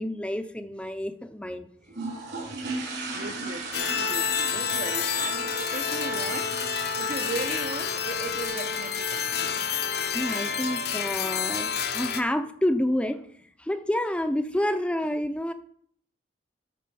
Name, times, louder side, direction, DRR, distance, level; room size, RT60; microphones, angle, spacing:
voice 1, 0.0-1.7 10.1-13.2 13.6-15.5, left 1 dB, 5° left, 0.6 m, -28 dB
sound 1, 1.9-8.5, right 3 dB, 70° right, 4.5 m, -38 dB
voice 2, 3.1-6.7 7.0-9.7, right 3 dB, 45° right, 0.9 m, -37 dB
sound 2, 3.7-12.2, left 6 dB, 60° left, 0.9 m, -29 dB
13.0 x 4.3 x 7.0 m
head